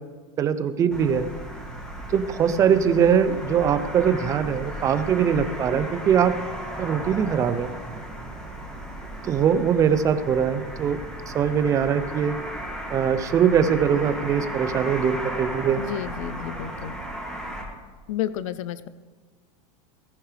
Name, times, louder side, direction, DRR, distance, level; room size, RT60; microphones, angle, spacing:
voice 1, 0.4-1.3 2.1-6.4 6.8-7.7 9.2-11.0 11.3-12.4 12.9-15.8, right 7 dB, 20° right, 12 dB, 0.5 m, -22 dB
sound 1, 0.9-17.6, equal, 5° left, 1.7 m, -35 dB
voice 2, 15.8-17.0 18.1-18.9, left 11 dB, 70° left, 15 dB, 0.4 m, -31 dB
18.0 x 9.4 x 3.3 m, 1.5 s
supercardioid pair, 165°, 17 cm